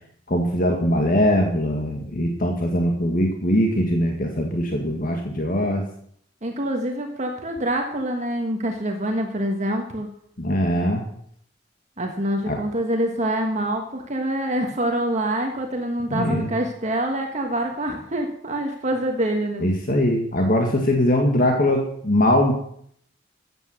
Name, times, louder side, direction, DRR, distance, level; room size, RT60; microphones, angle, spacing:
voice 1, 0.3-5.8 10.4-11.0 12.5-12.6 16.1-16.5 19.6-22.5, left 1 dB, 45° left, 2 dB, 1.8 m, -21 dB
voice 2, 6.4-10.1 12.0-19.6, right 1 dB, 40° right, 3 dB, 1.5 m, -25 dB
14.0 x 9.1 x 6.4 m, 0.65 s
head